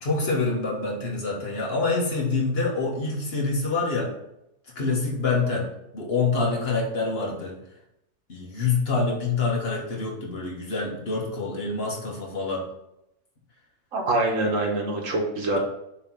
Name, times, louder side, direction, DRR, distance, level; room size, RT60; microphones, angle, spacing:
voice 1, 0.0-4.1 4.7-5.7 5.9-7.6 8.3-12.6 15.5-15.6, left 3 dB, 40° left, -2 dB, 1.7 m, -26 dB
voice 2, 13.9-15.6, right 2 dB, 60° right, 2 dB, 1.5 m, -25 dB
6.5 x 3.1 x 5.7 m, 0.84 s
omnidirectional pair, 1.6 m